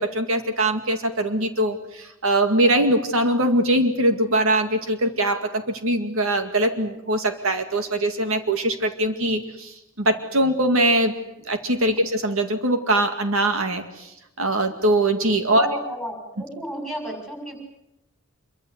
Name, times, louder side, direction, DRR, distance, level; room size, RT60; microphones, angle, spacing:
voice 1, 0.0-11.1 11.4-15.7, right 1 dB, 70° right, 6 dB, 2.2 m, -22 dB
voice 2, 15.5-17.6, right 1 dB, ahead, 3 dB, 6.8 m, -32 dB
26.5 x 24.0 x 8.1 m, 0.89 s
head